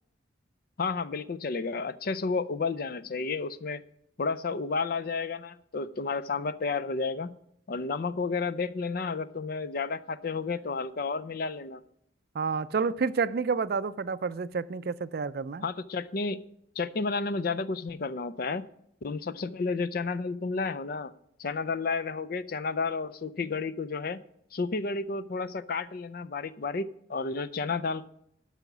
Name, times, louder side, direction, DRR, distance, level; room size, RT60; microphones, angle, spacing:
voice 1, 0.8-3.8 4.2-7.3 7.7-11.8 15.6-16.4 16.8-18.6 19.0-21.1 21.4-24.2 24.5-28.1, left 4 dB, 50° left, 0.5 m, -31 dB
voice 2, 12.3-15.6, right 5 dB, 50° right, 0.4 m, -29 dB
12.0 x 5.7 x 6.0 m
head